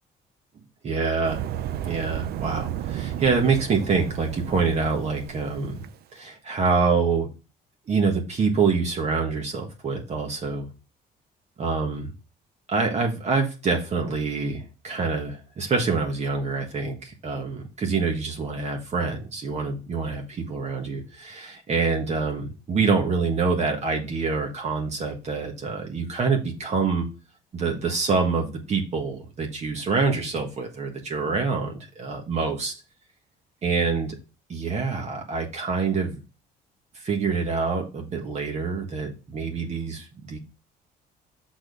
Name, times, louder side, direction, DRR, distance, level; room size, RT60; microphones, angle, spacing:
voice 1, 0.8-1.4 1.9-5.8 6.1-7.3 7.9-10.6 11.6-12.0 12.7-27.1 27.5-32.7 33.6-34.2 34.5-36.2 36.9-40.4, right 4 dB, 40° right, 2 dB, 1.6 m, -26 dB
sound 1, 1.2-5.9, right 11 dB, 70° right, 0.6 m, -33 dB
6.3 x 4.2 x 4.9 m, 0.31 s
cardioid pair, 110°, 17 cm